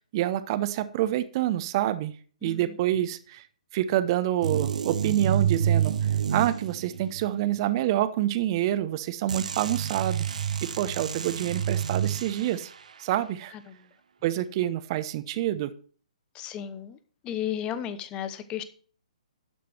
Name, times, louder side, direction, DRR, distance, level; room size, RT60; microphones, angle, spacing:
voice 1, 0.1-2.1 2.4-3.5 3.7-5.9 6.3-10.2 10.8-12.7 13.0-13.5 14.2-15.7, right 13 dB, 35° right, 13 dB, 0.8 m, -27 dB
voice 2, 2.4-2.8 13.5-13.9 16.3-17.0 17.2-18.6, left 10 dB, 20° left, 13 dB, 0.9 m, -34 dB
sound 1, 4.4-7.3 9.3-12.7, right 8 dB, 65° right, 0.8 m, -28 dB
12.0 x 5.1 x 6.0 m, 0.43 s
figure-of-eight pair, 130°, 4 cm